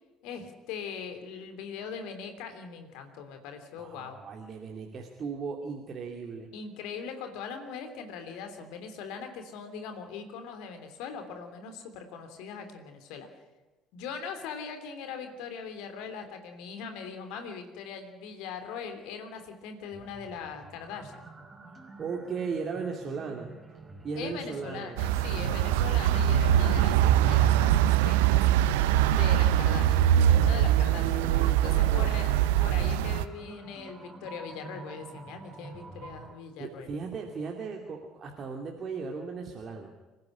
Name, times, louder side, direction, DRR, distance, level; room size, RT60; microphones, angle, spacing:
voice 1, 0.2-4.2 6.5-13.3 13.9-21.3 24.1-28.4 29.1-36.9, left 6 dB, 60° left, 7 dB, 3.2 m, -41 dB
voice 2, 3.8-6.5 22.0-23.5 24.0-25.0 30.4-32.1 36.6-39.9, right 5 dB, 40° right, 1 dB, 2.7 m, -37 dB
sound 1, 19.9-36.3, right 3 dB, 20° right, 5.6 m, -49 dB
sound 2, 25.0-33.3, right 11 dB, 65° right, 0.8 m, -23 dB
25.0 x 15.5 x 9.9 m, 1.2 s
figure-of-eight pair, 50°, 0 cm